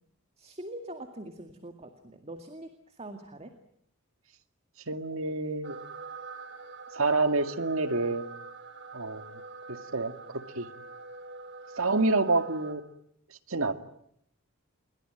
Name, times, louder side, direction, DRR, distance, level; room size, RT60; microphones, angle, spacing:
voice 1, 0.4-2.7 3.0-3.5, right 1 dB, 30° right, 7 dB, 2.1 m, -43 dB
voice 2, 4.9-5.8 6.9-8.2 8.9-9.4 9.7-10.7 11.8-12.8 13.5-13.7, right 3 dB, 70° right, 8 dB, 2.2 m, -28 dB
sound 1, 5.6-12.7, right 4 dB, 55° right, 3.7 m, -45 dB
28.5 x 22.5 x 9.0 m, 0.72 s
head